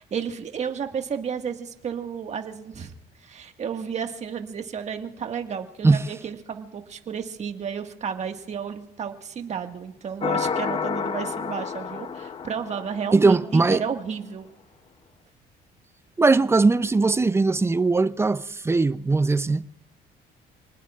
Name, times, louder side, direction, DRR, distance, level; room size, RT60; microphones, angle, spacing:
voice 1, 0.0-2.9 3.2-14.5, right 7 dB, 40° right, 1.8 m, -32 dB
sound 1, 10.2-13.6, left 6 dB, 30° left, 0.7 m, -30 dB
voice 2, 13.1-13.8 16.2-19.7, right 3 dB, 15° right, 0.5 m, -20 dB
29.5 x 20.0 x 2.5 m
cardioid pair, 110°, 17 cm